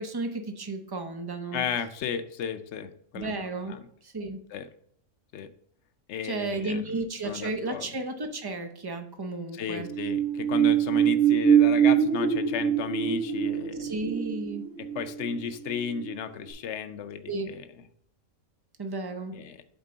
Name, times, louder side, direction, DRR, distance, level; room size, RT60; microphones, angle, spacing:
voice 1, 0.0-1.7 3.1-3.7 4.0-4.4 6.2-9.9 13.8-14.7 17.3-17.5 18.8-19.3, right 2 dB, 35° right, 6 dB, 0.4 m, -33 dB
voice 2, 1.5-3.3 3.7-3.9 4.5-4.7 5.3-5.5 6.1-7.9 9.5-14.0 14.8-17.7 19.3-19.6, left 6 dB, 60° left, 10 dB, 0.8 m, -34 dB
sound 1, 9.8-16.1 16.5-16.6, right 8 dB, 60° right, 1.4 m, -24 dB
7.6 x 4.4 x 3.9 m, 0.70 s
omnidirectional pair, 1.5 m